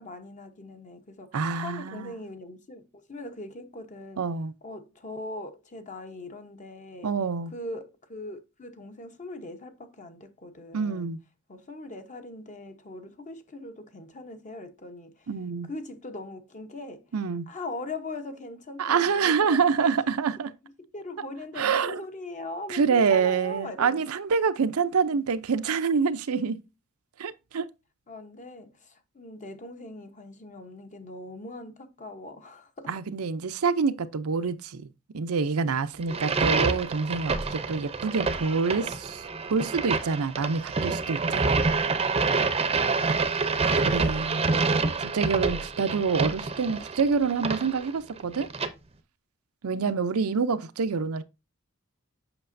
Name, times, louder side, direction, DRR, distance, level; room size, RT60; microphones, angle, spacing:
voice 1, 0.0-4.3 4.6-7.1 7.5-11.1 11.5-15.3 15.7-17.1 17.5-20.3 20.9-24.0 25.1-25.2 28.1-32.9 36.0-36.6 38.1-38.4 42.8-43.5 49.7-50.0, left 2 dB, 35° left, 0.9 m, -41 dB
voice 2, 1.3-2.1 4.2-4.5 7.0-7.5 10.7-11.2 15.3-15.7 17.1-17.5 18.8-20.5 21.6-22.0 22.7-26.6 27.2-27.7 32.9-34.9 35.1-39.2 39.5-41.6 43.8-44.4 45.0-48.5 49.6-51.2, right 5 dB, 85° right, 0.6 m, -26 dB
sound 1, 36.0-48.7, right 4 dB, 25° right, 0.6 m, -27 dB
7.9 x 5.8 x 2.6 m
head